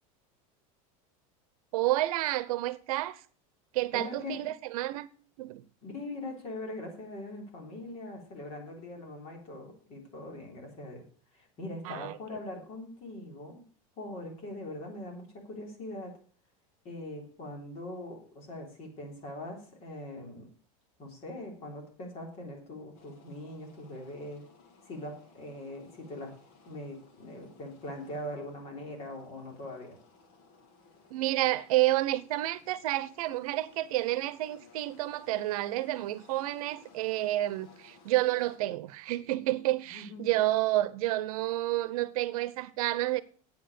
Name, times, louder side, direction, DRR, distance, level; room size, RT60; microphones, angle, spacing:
voice 1, 1.7-3.2 3.7-5.1 5.4-5.6 11.8-12.1 31.1-43.2, right 16 dB, 85° right, 0.8 m, -30 dB
voice 2, 3.9-4.4 5.8-11.0 11.3-13.6 14.0-16.2 16.9-20.5 21.0-24.4 24.9-26.3 26.7-30.0 39.9-40.3, left 1 dB, 35° left, 3.5 m, -42 dB
sound 1, 22.9-38.6, left 4 dB, 50° left, 2.5 m, -59 dB
8.6 x 8.0 x 6.6 m
supercardioid pair, 170°, 18 cm